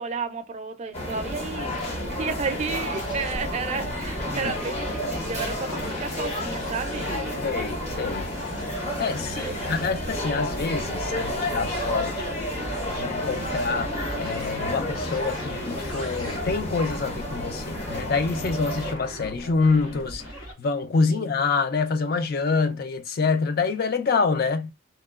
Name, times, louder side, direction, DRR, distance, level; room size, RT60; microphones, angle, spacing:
voice 1, 0.0-7.4 9.3-9.7 21.1-21.3, right 5 dB, 35° right, 0.4 m, -32 dB
sound 1, 0.9-18.9, left 1 dB, 35° left, 0.8 m, -31 dB
sound 2, 1.6-20.5, equal, 80° left, 1.3 m, -40 dB
voice 2, 7.4-8.3 9.0-12.3 12.9-13.9 14.2-20.2 20.6-24.7, left 4 dB, 50° left, 0.4 m, -26 dB
2.9 x 2.2 x 2.3 m
head